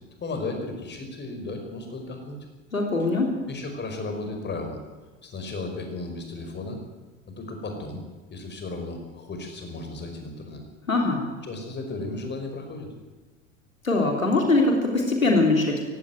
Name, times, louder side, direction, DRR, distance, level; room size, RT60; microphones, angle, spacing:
voice 1, 0.2-2.4 3.5-4.8 5.2-6.8 7.3-8.0 8.3-10.6 11.4-12.9, left 3 dB, 25° left, 5 dB, 5.5 m, -34 dB
voice 2, 2.7-3.3 10.9-11.2 13.8-15.8, left 2 dB, 85° left, 2 dB, 3.2 m, -22 dB
17.5 x 16.5 x 9.4 m, 1.3 s
figure-of-eight pair, 75°, 40 cm